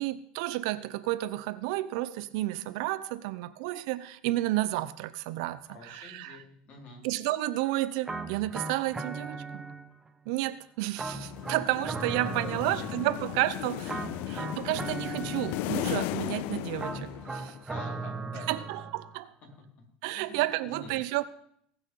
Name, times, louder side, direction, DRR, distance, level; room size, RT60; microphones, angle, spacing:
voice 1, 0.0-6.4 7.0-9.6 10.3-14.0 14.3-17.6 18.5-19.3 20.0-21.2, right 16 dB, 75° right, 15 dB, 0.8 m, -31 dB
voice 2, 5.6-7.1 12.1-13.3 13.6-14.4 17.7-18.9 19.4-19.5 20.1-21.0, left 3 dB, 45° left, 0 dB, 4.4 m, -48 dB
sound 1, 8.0-10.1 11.0-13.3 13.9-16.0 16.8-19.2, right 3 dB, 15° right, 1.0 m, -38 dB
sound 2, 11.1-17.6, left 17 dB, 65° left, 0.4 m, -36 dB
19.0 x 6.3 x 5.6 m, 0.70 s
supercardioid pair, 120°, 3 cm